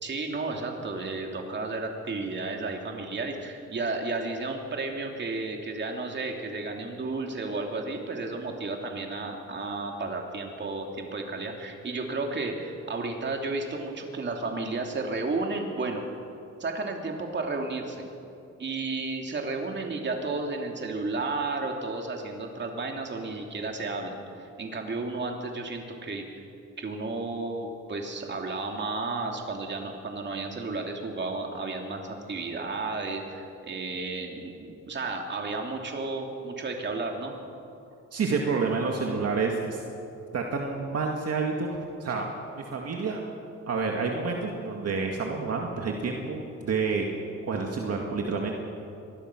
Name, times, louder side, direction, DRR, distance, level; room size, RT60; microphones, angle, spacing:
voice 1, 0.0-16.1 16.6-18.1 18.6-26.3 26.8-37.3, right 3 dB, 40° right, 2 dB, 3.0 m, -33 dB
voice 2, 38.1-39.8 40.3-41.7 42.0-42.3 42.5-43.2 43.7-47.1 47.4-48.5, right 4 dB, 55° right, 1 dB, 2.2 m, -29 dB
25.0 x 20.0 x 6.2 m, 2.7 s
cardioid pair, 130°, 29 cm